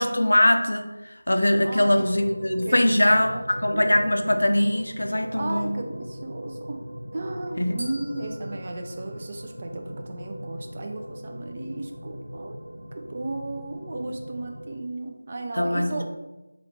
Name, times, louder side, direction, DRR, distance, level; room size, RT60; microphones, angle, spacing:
voice 1, 0.0-5.8 7.6-7.8 15.6-16.0, left 1 dB, 60° left, 5 dB, 0.4 m, -22 dB
voice 2, 1.6-2.1 2.6-3.4 3.7-4.1 5.4-6.8 7.1-12.6 12.9-16.0, right 2 dB, 30° right, 2 dB, 0.4 m, -35 dB
sound 1, 1.8-14.8, equal, 70° right, 0.6 m, -39 dB
sound 2, 7.8-10.0, right 1 dB, 45° right, 1.2 m, -45 dB
2.9 x 2.8 x 4.1 m, 1.0 s
figure-of-eight pair, 165°, 0 cm